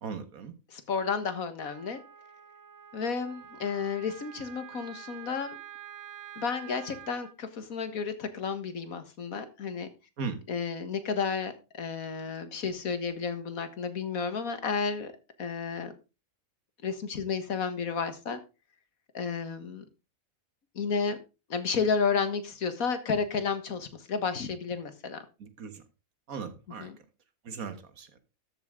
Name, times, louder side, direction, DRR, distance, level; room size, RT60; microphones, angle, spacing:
voice 1, 0.0-0.5 10.2-10.4 25.4-25.8 26.3-26.9 27.4-28.1, right 5 dB, 90° right, 10 dB, 1.9 m, -38 dB
voice 2, 0.7-2.0 2.9-5.6 6.4-9.9 10.5-15.1 15.4-15.9 16.8-18.4 19.1-19.8 20.8-21.2 21.5-25.2 26.8-27.0, left 5 dB, 90° left, 10 dB, 2.0 m, -32 dB
Wind instrument woodwind instrument, 1.6-7.3, right 10 dB, 60° right, 1.1 m, -47 dB
13.0 x 7.7 x 3.7 m, 0.29 s
omnidirectional pair, 1.4 m